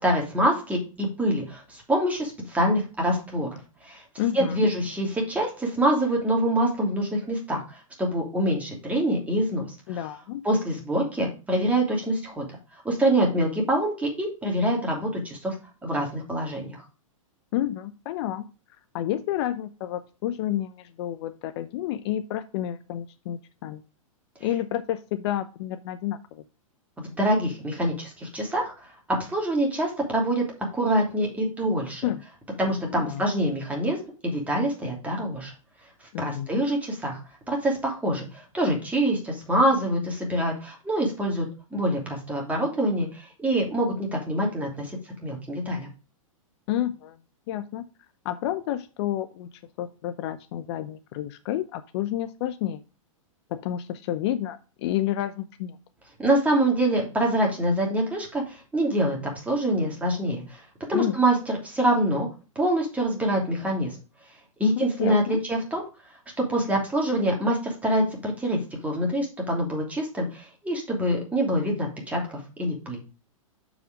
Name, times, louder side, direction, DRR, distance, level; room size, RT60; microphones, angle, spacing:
voice 1, 0.0-4.0 4.3-7.6 8.0-10.0 10.4-12.5 12.8-15.6 15.8-16.8 27.0-28.7 29.3-30.4 30.7-32.0 32.6-35.5 36.2-37.2 37.5-41.5 41.7-45.0 45.2-45.9 56.2-59.2 59.4-60.6 60.9-62.3 62.5-63.9 64.6-65.8 66.5-73.0, right 1 dB, 10° right, -1 dB, 2.8 m, -25 dB
voice 2, 4.2-4.7 9.9-10.4 17.5-18.5 18.9-23.8 24.4-26.4 32.0-32.2 32.8-33.3 36.1-36.6 46.7-47.2 47.5-47.8 48.2-49.5 49.8-52.8 53.5-55.8 60.9-61.2 64.6-65.4, left 12 dB, 50° left, 12 dB, 0.6 m, -30 dB
6.6 x 4.9 x 5.0 m, 0.33 s
hypercardioid pair, 120°, 18 cm